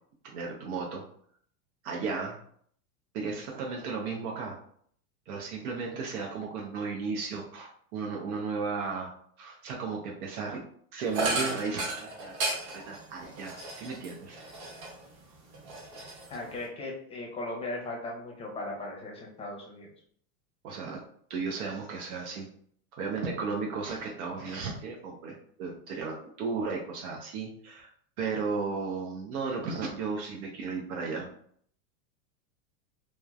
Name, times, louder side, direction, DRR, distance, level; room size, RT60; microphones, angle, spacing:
voice 1, 0.2-1.0 1.8-2.4 3.1-4.6 5.3-9.1 9.4-10.6 10.9-12.4 12.7-14.4 20.6-21.0 21.3-22.5 23.0-27.9 28.2-31.3, right 4 dB, 75° right, 0 dB, 0.7 m, -34 dB
sound 1, 11.1-15.1 15.5-16.7, right 2 dB, 50° right, 1.1 m, -34 dB
voice 2, 16.3-19.9, left 2 dB, 15° left, -2 dB, 0.6 m, -38 dB
3.1 x 2.1 x 2.3 m, 0.62 s
supercardioid pair, 125°, 43 cm